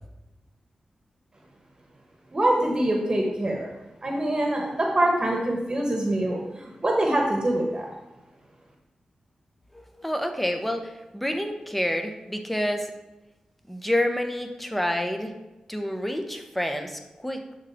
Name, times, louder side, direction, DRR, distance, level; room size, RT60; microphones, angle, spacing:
voice 1, 2.3-3.7 4.0-7.9, right 1 dB, 35° right, 0 dB, 1.2 m, -24 dB
voice 2, 9.7-12.9 13.7-15.4 15.7-17.5, left 1 dB, 5° left, 5 dB, 0.9 m, -28 dB
11.5 x 3.9 x 3.6 m, 1.1 s
cardioid pair, 70°, 2 cm